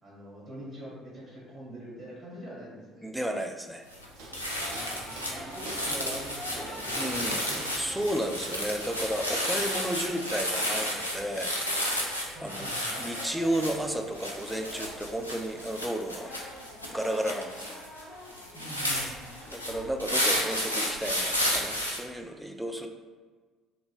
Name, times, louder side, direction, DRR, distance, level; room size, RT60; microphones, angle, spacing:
voice 1, 0.0-3.1 4.7-7.6 12.3-13.1 18.5-19.3, right 1 dB, 40° right, -6 dB, 1.5 m, -44 dB
voice 2, 3.0-3.8 7.0-7.4 7.8-12.1 12.4-12.7 13.0-16.3 16.9-17.8 19.4-22.9, right 1 dB, 5° right, 4 dB, 0.3 m, -33 dB
sound 1, 3.9-4.1 4.3-22.0, equal, 90° left, 0.3 m, -32 dB
Brass instrument, 4.0-8.5 8.7-20.9, left 1 dB, 45° left, 1.0 m, -47 dB
Walk footsteps, 4.1-9.4, right 2 dB, 65° right, 0.5 m, -46 dB
4.1 x 2.2 x 2.4 m, 1.4 s
figure-of-eight pair, 55°, 0 cm